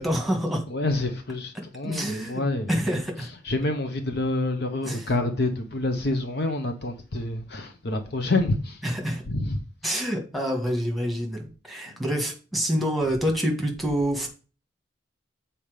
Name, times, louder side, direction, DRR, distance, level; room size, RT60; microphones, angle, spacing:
voice 1, 0.0-0.6 1.8-2.4 2.7-3.3 4.8-5.0 8.8-9.2 9.8-14.3, equal, ahead, 1.6 m, -27 dB
voice 2, 0.7-8.9 9.2-10.0, left 2 dB, 60° left, 0.9 m, -28 dB
7.1 x 4.3 x 5.0 m
head